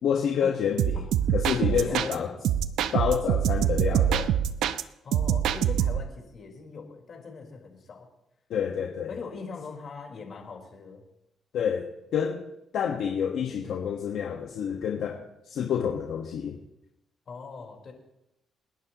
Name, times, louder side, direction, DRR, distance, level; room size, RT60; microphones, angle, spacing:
voice 1, 0.0-1.0 1.3-2.3 2.9-4.3 8.5-9.1 11.5-11.9 12.1-12.4 12.7-16.6, left 8 dB, 75° left, 2 dB, 1.5 m, -28 dB
sound 1, 0.8-2.1 2.4-4.8 5.1-6.1, right 10 dB, 85° right, 0.6 m, -25 dB
voice 2, 1.5-2.3 5.0-8.1 9.1-11.0 17.3-17.9, left 5 dB, 50° left, 1 dB, 4.2 m, -41 dB
29.0 x 11.0 x 3.0 m, 0.88 s
cardioid pair, 90°, 0 cm